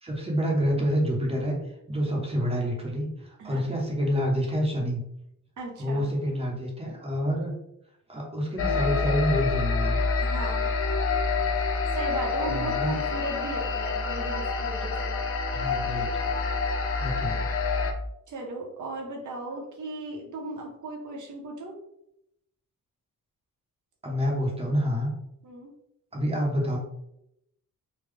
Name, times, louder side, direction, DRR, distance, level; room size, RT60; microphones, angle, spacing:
voice 1, 0.0-1.6 1.9-5.0 5.8-7.5 8.1-10.0 12.5-13.0 15.5-16.1 17.0-17.4 24.0-25.1 26.1-26.8, equal, 15° right, -2 dB, 0.9 m, -27 dB
voice 2, 5.6-6.1 10.2-10.7 11.9-15.2 18.3-21.7 25.4-25.7, right 2 dB, 60° right, 0 dB, 1.0 m, -36 dB
sound 1, 8.6-17.9, left 4 dB, 40° left, 0.4 m, -27 dB
3.7 x 2.2 x 3.3 m, 0.80 s
wide cardioid pair, 140°, 34 cm